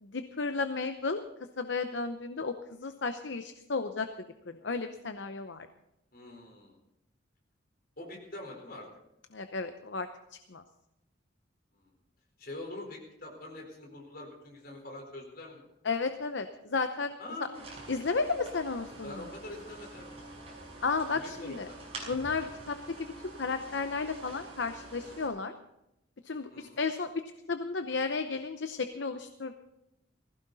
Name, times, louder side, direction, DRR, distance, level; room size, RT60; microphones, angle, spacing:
voice 1, 0.0-1.2 1.6-4.1 4.5-5.7 9.3-10.1 10.5-10.6 15.8-17.1 17.9-19.2 20.8-21.7 22.1-25.5 26.2-27.1 27.5-29.5, left 4 dB, 70° left, 9 dB, 0.8 m, -33 dB
voice 2, 6.1-6.8 8.0-8.9 11.7-11.9 12.4-15.6 17.2-17.6 19.0-20.1 21.0-21.8 26.5-26.8, left 2 dB, 50° left, 0 dB, 4.3 m, -44 dB
sound 1, 17.5-25.3, right 2 dB, 30° right, 6.1 m, -46 dB
19.0 x 15.5 x 4.1 m, 0.86 s
head